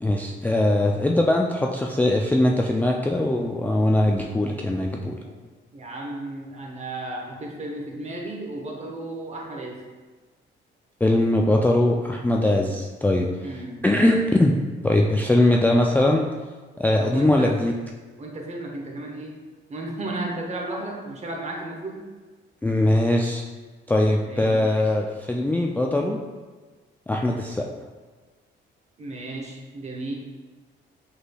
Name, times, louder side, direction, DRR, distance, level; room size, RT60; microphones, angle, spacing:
voice 1, 0.0-5.2 11.0-13.3 13.8-14.5 14.8-16.3 16.8-17.7 22.6-23.4 23.9-26.2 27.1-27.7, left 1 dB, 10° left, 0 dB, 0.3 m, -21 dB
voice 2, 5.7-9.8 13.4-13.8 17.0-17.6 18.2-19.4 19.7-22.0 24.2-24.6 29.0-30.1, right 2 dB, 35° right, 0 dB, 0.9 m, -34 dB
6.5 x 3.2 x 2.3 m, 1.3 s
cardioid pair, 90°, 20 cm